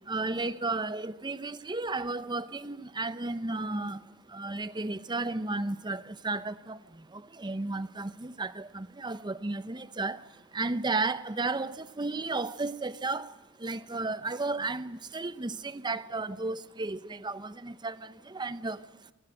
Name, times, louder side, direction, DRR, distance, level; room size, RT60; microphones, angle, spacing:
voice 1, 0.1-19.1, right 3 dB, 20° right, 0.7 m, -34 dB
29.0 x 12.0 x 8.8 m
head